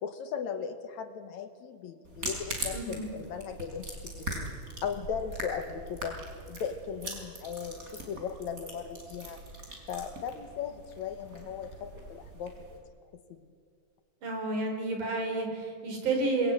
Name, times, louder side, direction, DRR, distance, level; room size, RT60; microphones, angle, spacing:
voice 1, 0.0-4.5 4.8-6.2 6.5-9.4 9.9-12.8 13.3-13.4, left 7 dB, 65° left, 8 dB, 2.3 m, -37 dB
sound 1, 2.0-12.8, right 1 dB, 25° right, 5.1 m, -41 dB
voice 2, 2.7-3.1 14.2-16.5, right 2 dB, 65° right, 3 dB, 5.9 m, -30 dB
26.5 x 21.0 x 9.1 m, 2.2 s
omnidirectional pair, 3.8 m